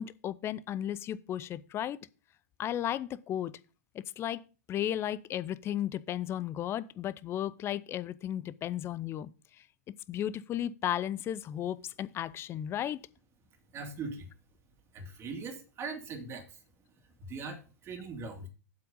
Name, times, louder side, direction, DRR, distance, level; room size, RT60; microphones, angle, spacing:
voice 1, 0.0-2.0 2.6-3.5 3.9-4.4 4.7-9.3 9.9-13.0, left 11 dB, 25° left, 0.6 m, -34 dB
voice 2, 13.7-14.3 14.9-16.9 17.2-18.5, right 4 dB, 30° right, 2.3 m, -41 dB
7.9 x 5.9 x 5.4 m
hypercardioid pair, 105°, 9 cm